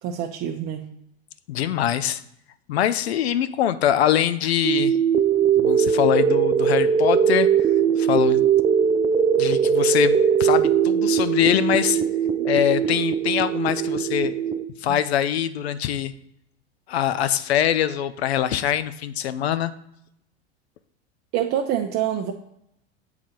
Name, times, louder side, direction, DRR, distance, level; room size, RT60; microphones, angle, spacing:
voice 1, 0.0-0.9 12.4-12.5 14.9-15.0 21.3-22.3, right 10 dB, 45° right, 2 dB, 0.8 m, -26 dB
voice 2, 1.5-2.2 2.7-5.0 5.6-7.5 8.0-8.4 9.4-12.0 12.4-14.4 14.8-16.1 16.9-19.7, left 11 dB, 80° left, 13 dB, 0.6 m, -23 dB
sound 1, 4.6-14.6, right 7 dB, 15° right, 0.3 m, -20 dB
7.5 x 3.9 x 4.4 m, 0.76 s
hypercardioid pair, 90°, 32 cm